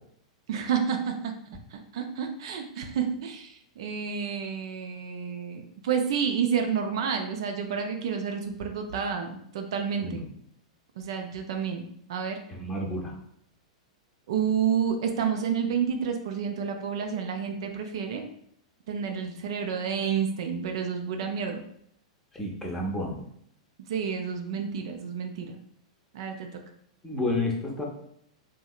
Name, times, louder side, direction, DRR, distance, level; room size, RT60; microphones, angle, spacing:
voice 1, 0.5-1.4 1.7-10.2 11.0-11.8 12.1-12.4 14.3-18.3 18.9-21.6 23.8-25.5 26.1-26.6, right 7 dB, 55° right, 4 dB, 0.4 m, -30 dB
voice 2, 12.5-13.1 22.3-23.2 27.0-27.8, left 1 dB, 10° left, -1 dB, 0.7 m, -30 dB
3.2 x 2.7 x 2.3 m, 0.68 s
figure-of-eight pair, 100°, 3 cm